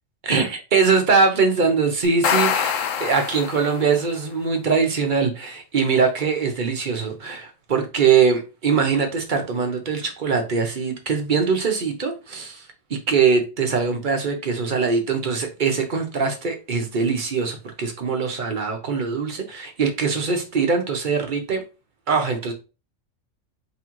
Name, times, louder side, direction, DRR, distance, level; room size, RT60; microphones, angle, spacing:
voice 1, 0.2-21.6 22.1-22.5, right 5 dB, 45° right, 0.8 m, -22 dB
sound 1, 2.0-4.0, left 8 dB, 85° left, 1.0 m, -24 dB
3.7 x 3.5 x 3.0 m
omnidirectional pair, 1.3 m